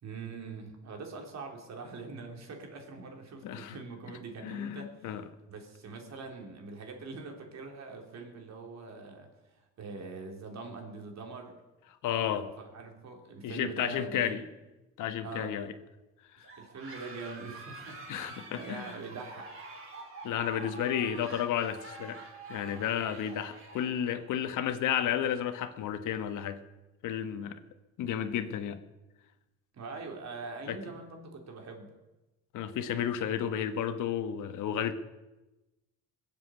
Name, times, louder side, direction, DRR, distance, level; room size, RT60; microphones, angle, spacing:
voice 1, 0.0-5.2 5.5-11.6 12.3-14.4 15.2-15.7 16.4-19.5 29.7-32.0, right 4 dB, 65° right, 3 dB, 3.7 m, -43 dB
voice 2, 3.4-3.7 4.4-5.2 12.0-12.5 13.4-14.4 15.0-15.7 16.4-16.5 18.1-18.9 20.2-22.2 22.5-26.6 27.0-27.6 28.0-28.8 30.7-30.8 32.5-34.9, left 9 dB, 85° left, 10 dB, 1.3 m, -32 dB
sound 1, 16.4-24.3, right 3 dB, 45° right, 4.0 m, -47 dB
21.0 x 7.6 x 8.3 m, 1.1 s
cardioid pair, 90°, 30 cm